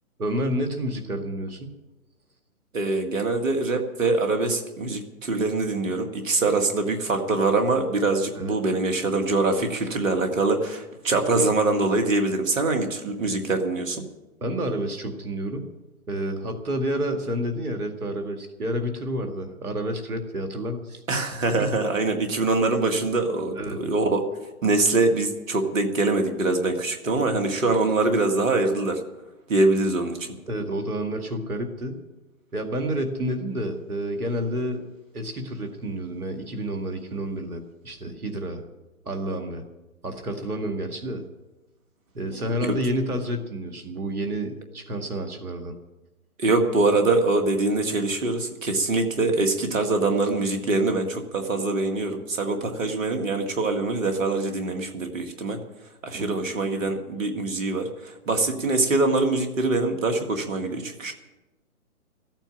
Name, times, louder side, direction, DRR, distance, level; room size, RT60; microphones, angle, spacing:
voice 1, 0.2-1.7 8.3-8.6 14.4-15.7 16.1-21.0 21.6-21.7 23.6-23.8 30.5-32.0 32.5-34.9 35.1-38.7 39.1-39.6 40.0-41.2 42.1-45.7 56.1-56.4, equal, 75° right, 5 dB, 2.2 m, -29 dB
voice 2, 2.7-14.0 21.1-29.0 29.5-30.3 42.3-42.8 46.4-61.1, right 3 dB, 60° right, 4 dB, 2.2 m, -24 dB
14.5 x 9.0 x 9.8 m, 1.1 s
figure-of-eight pair, 140°, 44 cm